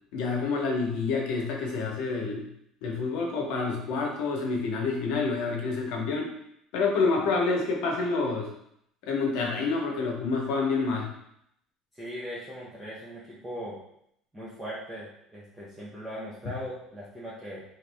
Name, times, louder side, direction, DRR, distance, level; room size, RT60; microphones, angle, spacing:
voice 1, 0.1-2.5 2.8-6.3 6.7-8.5 9.0-11.1 16.4-16.5, left 4 dB, 75° left, 0 dB, 0.8 m, -28 dB
voice 2, 11.9-13.8 14.3-17.6, equal, 10° right, -8 dB, 0.6 m, -39 dB
3.0 x 2.5 x 3.3 m, 0.74 s
cardioid pair, 160°, 0 cm